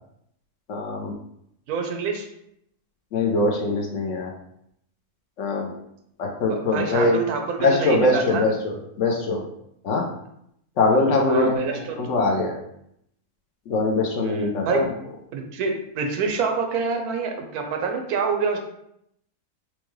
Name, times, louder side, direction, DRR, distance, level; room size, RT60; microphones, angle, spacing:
voice 1, 0.7-1.1 3.1-4.3 5.4-5.7 6.2-7.2 7.6-9.4 9.8-10.1 10.8-11.6 12.0-12.5 13.7-14.9, left 2 dB, 65° left, 1 dB, 0.9 m, -22 dB
voice 2, 1.7-2.3 6.5-8.5 10.9-12.0 14.2-14.9 15.3-18.6, right 5 dB, 90° right, 3 dB, 1.1 m, -27 dB
4.4 x 2.2 x 3.1 m, 0.75 s
omnidirectional pair, 1.6 m